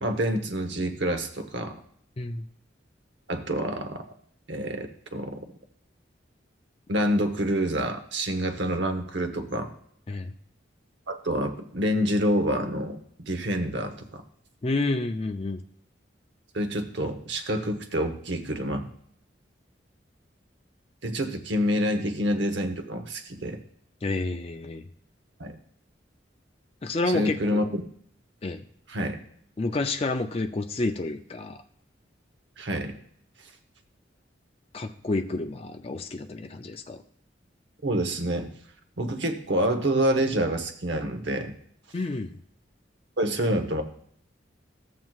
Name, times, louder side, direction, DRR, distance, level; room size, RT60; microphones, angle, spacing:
voice 1, 0.0-1.8 3.3-4.1 4.5-5.4 6.9-9.7 11.1-14.2 16.5-18.9 21.0-23.6 25.4-25.6 27.1-27.8 28.9-29.2 32.6-33.0 37.8-38.5 39.0-41.6 43.2-43.8, equal, 70° right, 7 dB, 0.9 m, -27 dB
voice 2, 14.6-15.6 24.0-24.8 26.8-27.7 28.4-28.6 29.6-31.6 34.7-37.0 41.9-42.4, left 2 dB, 30° left, 5 dB, 0.4 m, -29 dB
13.5 x 7.6 x 2.4 m, 0.63 s
head